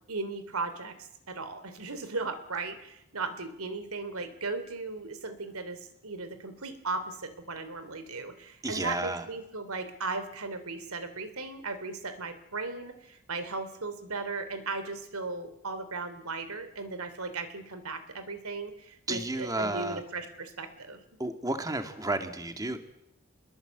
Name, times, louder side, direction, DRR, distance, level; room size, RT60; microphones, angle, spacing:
voice 1, 0.1-21.0, right 3 dB, 80° right, 10 dB, 3.1 m, -37 dB
voice 2, 8.6-9.2 19.1-20.0 21.2-22.8, right 2 dB, 15° right, 7 dB, 2.1 m, -32 dB
25.0 x 21.5 x 8.2 m, 0.82 s
head